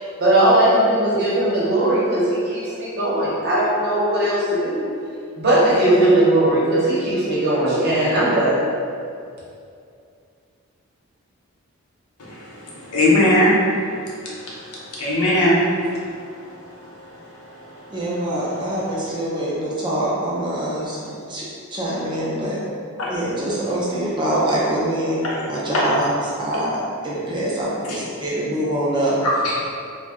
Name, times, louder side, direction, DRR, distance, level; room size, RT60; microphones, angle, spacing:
voice 1, 0.2-4.8 5.4-8.6, right 1 dB, 45° right, -7 dB, 0.7 m, -18 dB
voice 2, 12.9-13.5 15.0-15.6 23.0-23.1 25.2-25.3 29.4-29.6, left 1 dB, 80° left, -6 dB, 0.7 m, -17 dB
voice 3, 17.9-21.0 21.3-21.4 21.7-22.6 23.1-25.2 25.5-29.1, right 1 dB, 20° right, -6 dB, 0.4 m, -24 dB
2.6 x 2.0 x 3.5 m, 2.4 s
head